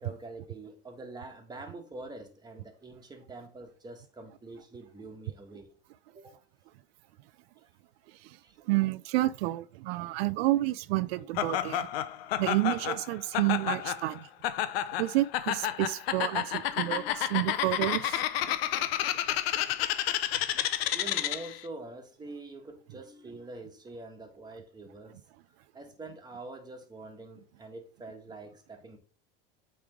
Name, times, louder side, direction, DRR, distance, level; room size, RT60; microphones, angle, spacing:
voice 1, 0.0-5.7 6.1-6.3 8.4-8.6 16.7-17.3 20.9-25.2 25.7-29.0, right 2 dB, 15° right, 1.4 m, -45 dB
voice 2, 8.7-11.9 12.4-14.3 15.0-18.3, right 18 dB, 85° right, 0.5 m, -29 dB
Laughter, 11.4-21.6, left 12 dB, 90° left, 0.6 m, -31 dB
8.6 x 3.3 x 3.6 m
supercardioid pair, 120°, 29 cm